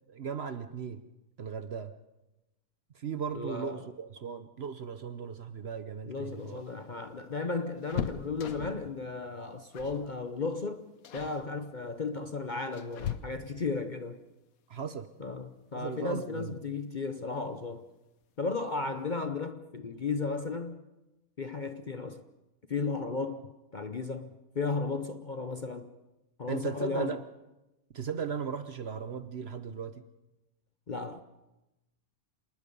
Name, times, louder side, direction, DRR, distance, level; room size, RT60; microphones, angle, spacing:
voice 1, 0.1-1.0 1.4-1.9 2.9-6.6 14.7-15.1 15.7-16.5 26.5-27.2 27.9-30.0, right 6 dB, 50° right, 1.0 m, -37 dB
voice 2, 3.3-3.8 6.1-10.8 11.1-14.2 15.2-17.9 18.4-20.8 21.4-22.2 22.7-25.9 26.4-27.2 30.9-31.2, left 4 dB, 40° left, 0.8 m, -35 dB
sound 1, 6.2-8.9 9.7-10.1 10.4-10.6 11.0-11.4 12.2-13.7 15.5-15.6 15.9-16.0 17.2-17.6 18.0-18.1 18.4-18.6, left 9 dB, 70° left, 1.3 m, -40 dB
27.0 x 20.0 x 5.4 m
omnidirectional pair, 1.6 m